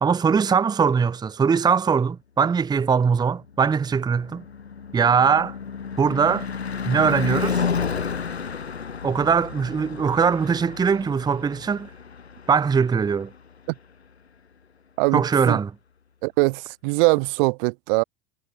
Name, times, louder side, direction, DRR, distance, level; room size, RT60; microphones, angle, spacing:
voice 1, 0.0-4.4 4.9-5.6 6.0-6.5 6.9-7.7 9.0-11.9 12.5-13.3 15.1-15.7, right 6 dB, 15° right, 0.8 m, -21 dB
Car passing by / Truck / Engine, 3.4-13.7, left 6 dB, 90° left, 1.2 m, -32 dB
voice 2, 15.0-15.6 16.2-18.0, right 30 dB, 55° right, 1.4 m, -22 dB
figure-of-eight pair, 85°, 31 cm